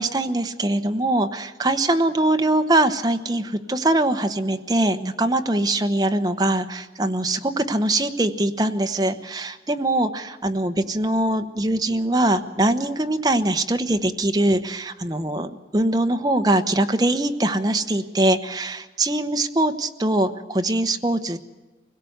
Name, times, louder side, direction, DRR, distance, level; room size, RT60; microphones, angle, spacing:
voice 1, 0.0-21.4, right 1 dB, 20° right, 6 dB, 1.0 m, -22 dB
24.0 x 17.0 x 8.0 m, 1.2 s
head